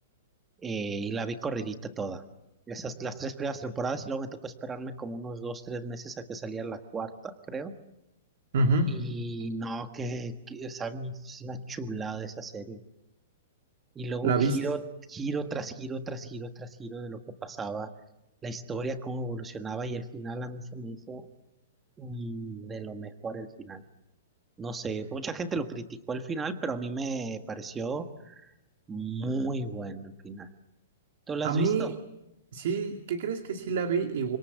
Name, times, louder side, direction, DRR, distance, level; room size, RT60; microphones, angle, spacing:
voice 1, 0.6-2.2 2.7-7.7 8.9-12.8 13.9-17.9 18.4-21.3 22.0-23.8 24.6-28.5 28.9-30.5 31.3-32.0, right 3 dB, 10° right, 9 dB, 1.5 m, -35 dB
voice 2, 8.5-9.0 14.2-14.7 31.4-31.9 32.5-34.4, right 3 dB, 55° right, 6 dB, 2.3 m, -27 dB
26.5 x 25.5 x 8.2 m, 0.87 s
hypercardioid pair, 170°, 0 cm